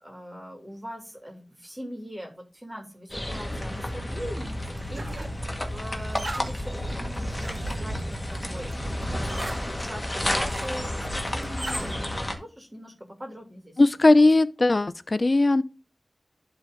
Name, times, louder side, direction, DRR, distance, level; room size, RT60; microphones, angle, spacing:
voice 1, 0.0-4.6 4.9-14.2, equal, 25° right, 2.8 m, -41 dB
sound 1, 3.1-12.3, left 1 dB, 25° left, 1.9 m, -31 dB
sound 2, 4.4-11.9, right 1 dB, 60° right, 1.9 m, -38 dB
voice 2, 13.8-15.6, left 2 dB, 50° left, 0.5 m, -19 dB
11.5 x 4.1 x 3.8 m
wide cardioid pair, 50°, 0 cm